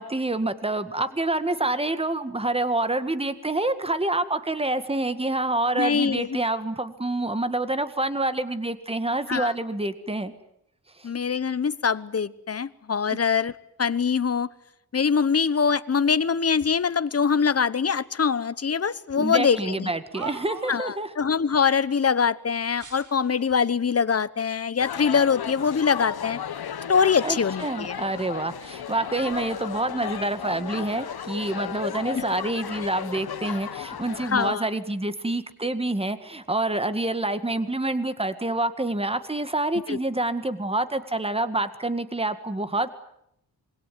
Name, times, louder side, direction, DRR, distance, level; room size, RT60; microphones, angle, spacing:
voice 1, 0.0-10.3 11.0-11.1 19.2-21.1 27.2-42.9, right 2 dB, 15° right, 11 dB, 1.8 m, -27 dB
voice 2, 5.8-6.4 9.3-9.5 11.0-13.5 13.8-14.5 14.9-19.9 20.7-26.4 26.9-28.0 32.1-32.2 34.2-34.7 39.9-40.0, left 6 dB, 40° left, 16 dB, 1.0 m, -23 dB
sound 1, 19.7-21.0 22.7-23.7 24.4-24.5 25.3-26.0 26.4-27.9 28.2-29.9 30.1-32.3 33.0-33.3, right 3 dB, 55° right, 3.9 m, -45 dB
sound 2, 24.8-34.5, left 8 dB, 85° left, 1.1 m, -35 dB
26.5 x 22.5 x 9.4 m, 0.77 s
wide cardioid pair, 135°, 36 cm